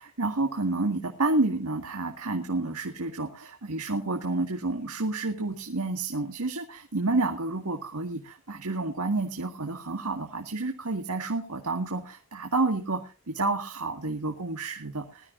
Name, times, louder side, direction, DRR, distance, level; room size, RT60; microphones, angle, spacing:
voice 1, 0.2-15.3, right 2 dB, 90° right, 4 dB, 2.0 m, -29 dB
21.0 x 13.5 x 2.6 m, 0.32 s
head